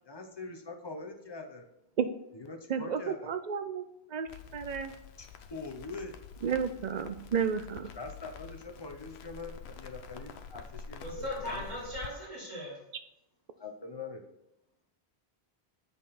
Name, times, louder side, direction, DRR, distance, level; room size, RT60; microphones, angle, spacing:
voice 1, 0.0-1.7 2.3-3.3 5.2-6.1 7.9-11.9 13.6-14.2, left 3 dB, 25° left, 3 dB, 0.8 m, -43 dB
voice 2, 2.7-4.9 6.4-7.9, right 7 dB, 55° right, 10 dB, 0.5 m, -32 dB
Crackle, 4.3-12.1, left 7 dB, 80° left, 0.9 m, -47 dB
voice 3, 11.0-12.8, left 1 dB, 30° right, -9 dB, 3.3 m, -38 dB
7.5 x 5.3 x 4.1 m, 0.83 s
omnidirectional pair, 1.1 m